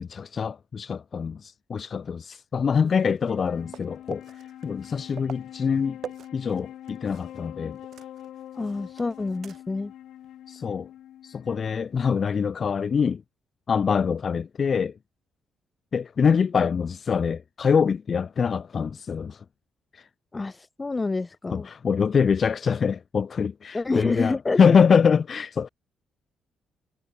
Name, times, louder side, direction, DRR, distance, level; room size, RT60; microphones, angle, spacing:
voice 1, 0.0-6.0 6.3-7.8 10.5-10.9 11.2-13.2 13.7-14.9 15.9-19.4 19.9-20.1 21.5-25.7, left 6 dB, 45° left, 0.6 m, -24 dB
sound 1, 2.8-7.5 7.7-9.9 10.2-10.3 12.9-13.0, right 9 dB, 60° right, 2.9 m, -46 dB
Wind instrument woodwind instrument, 3.3-12.8, left 11 dB, 75° left, 7.6 m, -44 dB
voice 2, 8.5-9.9 20.3-21.7 23.7-24.8, left 3 dB, 25° left, 2.3 m, -28 dB
cardioid pair, 90°, 0 cm